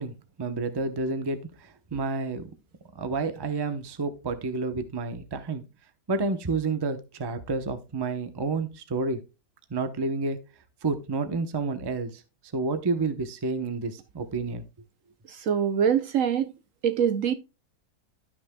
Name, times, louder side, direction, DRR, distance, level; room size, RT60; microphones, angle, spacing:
voice 1, 0.0-2.5 2.9-5.6 6.1-9.2 9.7-10.4 10.8-12.2 12.5-14.6, right 3 dB, 25° right, 0.6 m, -30 dB
voice 2, 15.3-16.5 16.8-17.3, right 8 dB, 65° right, 0.9 m, -24 dB
12.5 x 6.0 x 2.2 m
omnidirectional pair, 1.7 m